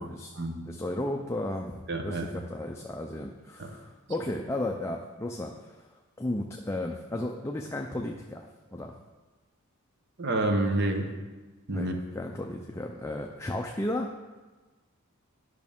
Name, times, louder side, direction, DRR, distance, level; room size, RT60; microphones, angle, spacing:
voice 1, 0.0-0.3 0.6-5.9 6.2-8.9 11.7-14.1, left 1 dB, 15° left, 1 dB, 0.4 m, -34 dB
voice 2, 1.9-2.3 3.6-3.7 10.2-11.1 11.7-12.0, right 2 dB, 50° right, 4 dB, 0.9 m, -28 dB
10.5 x 6.0 x 3.6 m, 1.3 s
head